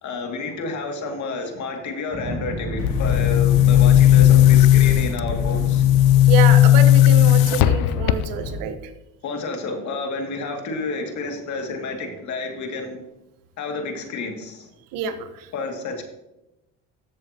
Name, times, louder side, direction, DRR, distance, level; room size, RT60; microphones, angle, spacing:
voice 1, 0.0-5.9 9.2-13.0 13.6-14.7 15.5-16.0, left 3 dB, 60° left, 3 dB, 2.3 m, -30 dB
sound 1, 2.1-8.7, equal, 20° right, 2.4 m, -31 dB
Boom, 2.8-8.6, left 13 dB, 90° left, 0.5 m, -15 dB
voice 2, 6.3-8.7 14.9-15.5, right 8 dB, 90° right, 8 dB, 1.3 m, -27 dB
14.0 x 7.7 x 2.9 m, 0.93 s
cardioid pair, 115°, 33 cm